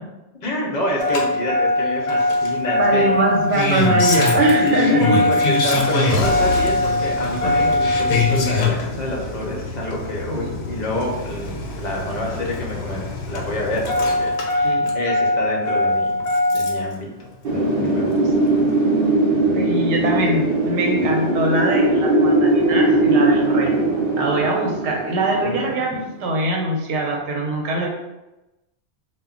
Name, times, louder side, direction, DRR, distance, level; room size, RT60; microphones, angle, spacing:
voice 1, 0.4-3.0 4.6-16.1 16.5-17.1 17.5-18.5 25.4-25.8, left 1 dB, 50° left, -2 dB, 0.6 m, -27 dB
Engine starting, 1.0-16.9 18.2-18.3, left 2 dB, 80° left, 0.9 m, -21 dB
voice 2, 2.8-5.0 10.3-10.5 14.6-14.9 19.5-23.8 24.1-27.9, right 2 dB, 90° right, 0 dB, 0.9 m, -22 dB
Wind, 17.4-26.2, right 2 dB, 60° right, 0.8 m, -19 dB
2.1 x 2.1 x 3.6 m, 0.99 s
omnidirectional pair, 1.2 m